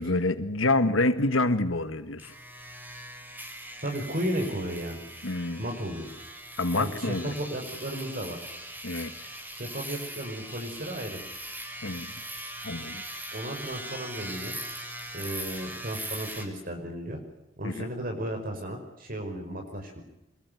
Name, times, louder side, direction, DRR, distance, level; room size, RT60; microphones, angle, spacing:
voice 1, 0.0-2.3 5.2-5.6 6.6-7.3 8.8-9.3 11.8-12.2 12.6-13.0 17.6-17.9, left 2 dB, 85° left, 10 dB, 1.7 m, -27 dB
sound 1, 2.2-16.5, right 1 dB, 10° right, 5.8 m, -40 dB
voice 2, 3.8-5.0 5.6-6.1 6.7-8.4 9.5-11.2 13.3-14.6 15.1-17.2 17.6-20.0, right 1 dB, 45° right, 3 dB, 5.5 m, -34 dB
26.5 x 22.5 x 9.4 m, 0.90 s
head